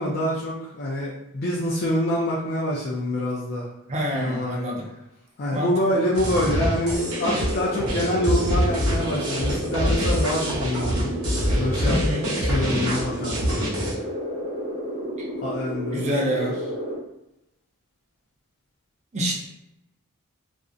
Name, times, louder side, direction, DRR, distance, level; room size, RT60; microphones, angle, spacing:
voice 1, 0.0-3.7 4.1-4.6 5.4-12.0 12.4-13.5 15.4-16.5, left 1 dB, 45° left, -4 dB, 0.4 m, -26 dB
voice 2, 3.9-4.9 5.5-5.7 11.9-12.2 15.9-16.6 19.1-19.4, equal, 30° right, -1 dB, 0.4 m, -26 dB
sound 1, 6.1-13.9, equal, 85° right, 0.8 m, -25 dB
sound 2, 7.0-17.0, equal, 45° right, 1.0 m, -31 dB
2.5 x 2.1 x 2.4 m, 0.86 s
head